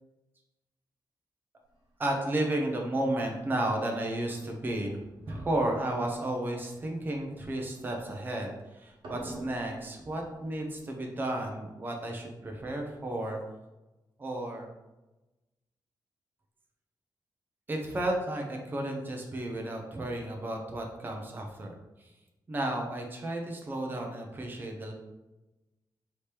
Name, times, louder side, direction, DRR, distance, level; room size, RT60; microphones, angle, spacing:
voice 1, 2.0-13.4 14.2-14.7 17.7-21.7 22.5-24.9, right 1 dB, 25° right, 1 dB, 0.6 m, -33 dB
sound 1, 2.9-3.2 3.8-4.9 5.3-8.6 8.9-11.5, right 1 dB, 80° right, 1.0 m, -49 dB
5.0 x 2.9 x 3.3 m, 1.0 s
wide cardioid pair, 160°, 8 cm